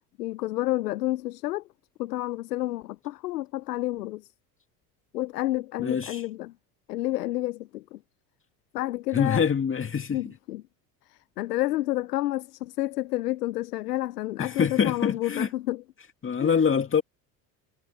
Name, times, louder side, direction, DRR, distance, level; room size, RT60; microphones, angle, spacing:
voice 1, 0.2-1.6 2.0-4.3 5.1-6.5 6.9-8.0 8.7-9.4 10.1-10.6 11.1-15.8 16.4-16.6, left 16 dB, 90° left, 0.7 m, -30 dB
voice 2, 5.8-6.3 9.1-10.2 14.4-15.5 16.2-17.0, left 6 dB, 25° left, 2.3 m, -25 dB
hypercardioid pair, 80°, 46 cm